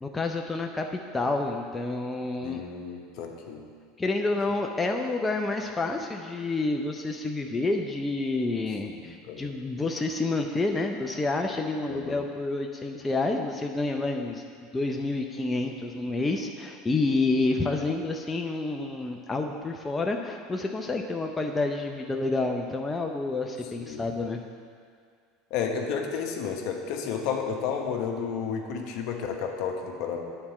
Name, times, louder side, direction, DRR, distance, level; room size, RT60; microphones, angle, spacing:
voice 1, 0.0-2.6 4.0-14.4 14.7-24.4, left 3 dB, 15° left, 2 dB, 0.6 m, -29 dB
voice 2, 2.4-3.7 8.9-9.4 11.9-12.2 23.8-24.0 25.5-30.2, left 6 dB, 60° left, 2 dB, 1.1 m, -32 dB
8.6 x 4.3 x 7.1 m, 2.1 s
supercardioid pair, 100°, 0 cm